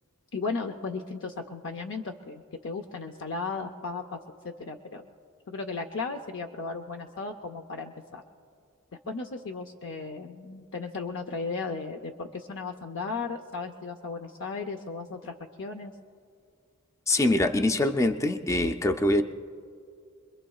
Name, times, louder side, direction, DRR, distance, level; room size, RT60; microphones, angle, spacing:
voice 1, 0.3-4.2 4.4-5.1 5.5-8.2 9.1-15.9, left 4 dB, 60° left, 5 dB, 0.6 m, -35 dB
voice 2, 17.1-19.2, left 1 dB, 15° left, 7 dB, 0.4 m, -24 dB
28.0 x 22.0 x 2.3 m, 2.3 s
head